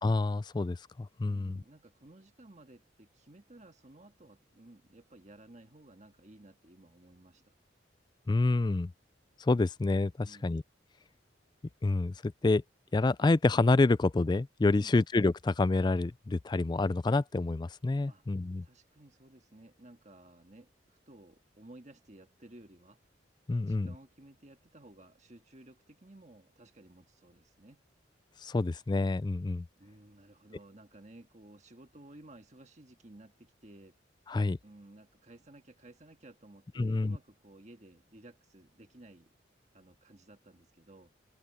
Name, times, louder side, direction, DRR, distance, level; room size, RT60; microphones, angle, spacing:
voice 1, 0.0-1.6 8.3-8.9 9.4-10.6 11.8-12.6 12.9-18.6 23.5-23.9 28.4-29.6 34.3-34.6 36.8-37.2, left 2 dB, 25° left, 0.3 m, -28 dB
voice 2, 1.3-7.5 10.2-10.6 14.7-15.0 18.1-18.2 18.6-23.0 23.6-27.9 29.8-34.0 34.6-39.3 39.7-41.1, right 1 dB, 40° right, 1.7 m, -55 dB
head